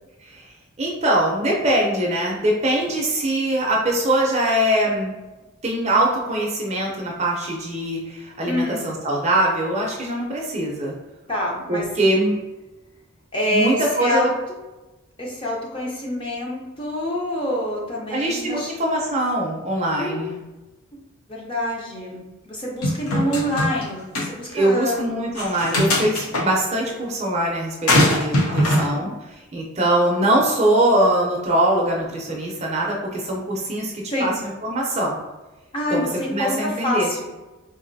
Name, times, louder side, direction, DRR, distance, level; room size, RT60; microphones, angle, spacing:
voice 1, 0.8-5.1 5.6-10.9 11.7-12.3 13.5-14.3 18.1-20.4 24.5-35.2 35.9-37.1, right 1 dB, 30° right, -1 dB, 0.5 m, -22 dB
voice 2, 8.5-8.9 11.3-11.9 13.3-14.4 15.2-18.7 20.0-20.3 21.3-25.1 28.5-29.1 34.1-34.4 35.7-37.3, left 1 dB, 25° left, -3 dB, 0.6 m, -26 dB
sound 1, 22.8-23.8 24.1-24.3 25.3-26.4 27.9-28.9, left 1 dB, 80° left, 0.7 m, -20 dB
4.0 x 2.6 x 2.6 m, 1.1 s
head